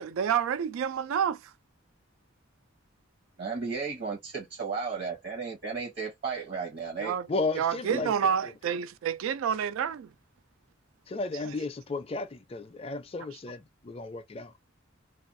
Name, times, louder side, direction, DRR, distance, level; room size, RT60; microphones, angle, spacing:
voice 1, 0.0-1.5 7.0-7.3 7.6-10.1, right 8 dB, 90° right, 0.3 m, -29 dB
voice 2, 3.4-7.1 7.9-8.0, right 5 dB, 55° right, 0.9 m, -34 dB
voice 3, 7.3-8.1 8.4-8.5 11.1-14.5, left 3 dB, 30° left, 0.4 m, -34 dB
2.4 x 2.3 x 2.5 m
head